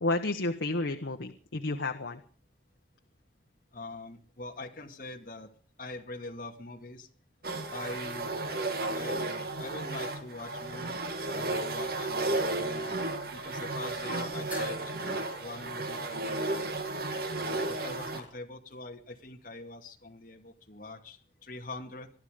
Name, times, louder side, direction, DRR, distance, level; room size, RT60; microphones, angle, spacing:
voice 1, 0.0-2.2, left 2 dB, 80° left, 4 dB, 1.2 m, -31 dB
voice 2, 3.7-5.5 5.8-7.1 7.7-8.3 8.8-11.0 11.3-13.0 13.3-16.7 17.4-22.1, left 2 dB, 45° left, 3 dB, 2.2 m, -44 dB
sound 1, 7.4-18.2, right 2 dB, 55° right, 2.0 m, -33 dB
sound 2, 14.5-18.9, left 1 dB, 10° right, 7.2 m, -50 dB
22.0 x 12.0 x 5.2 m, 0.43 s
head